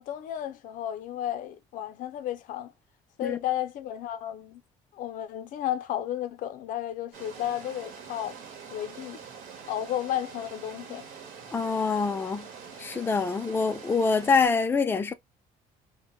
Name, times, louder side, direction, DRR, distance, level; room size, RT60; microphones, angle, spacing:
voice 1, 0.0-2.7 3.2-4.6 4.9-8.4 8.7-9.2 9.7-11.1, left 11 dB, 70° left, 0.5 m, -33 dB
sound 1, 7.1-14.5, right 6 dB, 80° right, 1.0 m, -45 dB
voice 2, 11.5-12.5 12.8-15.1, left 5 dB, 15° left, 0.4 m, -25 dB
2.1 x 2.1 x 2.9 m
cardioid pair, 100°, 14 cm